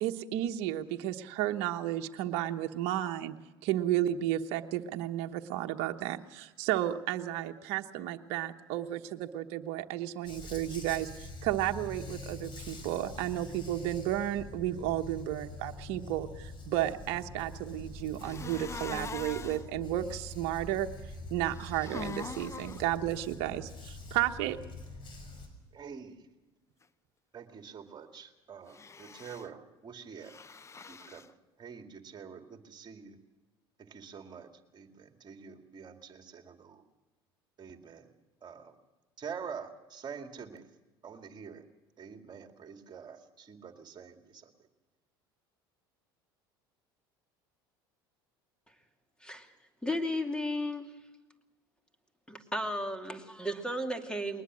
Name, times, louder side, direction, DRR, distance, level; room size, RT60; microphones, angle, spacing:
voice 1, 0.0-3.3 3.6-20.9 21.3-24.6, right 13 dB, 65° right, 5 dB, 1.1 m, -33 dB
Dog, 10.2-25.5, left 2 dB, 40° left, 5.8 m, -45 dB
sound 1, 18.2-19.6 21.4-22.8 28.7-29.5 30.2-31.3, left 5 dB, 25° left, 0.8 m, -43 dB
voice 2, 25.7-26.3 27.3-30.3 30.9-33.2 33.8-36.8 37.6-38.1 38.4-38.8 39.2-40.7 41.0-41.6 42.0-44.7, right 6 dB, 35° right, 6 dB, 2.3 m, -46 dB
voice 3, 49.8-50.9 52.3-54.4, left 1 dB, 5° left, 6 dB, 2.6 m, -34 dB
21.5 x 20.0 x 6.3 m, 1.1 s
hypercardioid pair, 75°, 13 cm